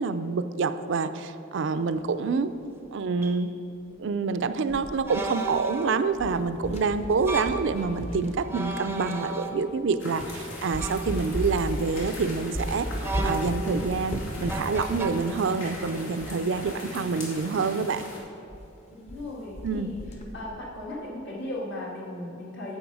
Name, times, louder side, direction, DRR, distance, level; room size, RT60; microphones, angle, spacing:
voice 1, 0.0-2.5 2.9-3.5 4.0-12.9 13.2-18.1 19.6-19.9, right 4 dB, 65° right, 11 dB, 0.4 m, -27 dB
sound 1, 2.3-2.4 3.2-3.4 5.1-6.1 7.1-7.7 8.4-9.9 10.8-11.1 13.0-13.8 14.5-15.1, right 3 dB, 10° right, 0.5 m, -34 dB
sound 2, 4.7-5.8 6.1-9.1 9.7-9.8 10.2-10.4 10.7-16.8 17.0-17.1 17.4-17.5 17.9-18.1 18.5-18.6 18.9-19.3 19.6-20.5, equal, 35° left, 0.9 m, -36 dB
sound 3, 10.0-18.2, left 2 dB, 85° left, 2.4 m, -41 dB
voice 2, 18.9-20.0 20.3-22.8, left 1 dB, 60° left, -4 dB, 2.1 m, -37 dB
10.0 x 7.4 x 4.9 m, 2.8 s
head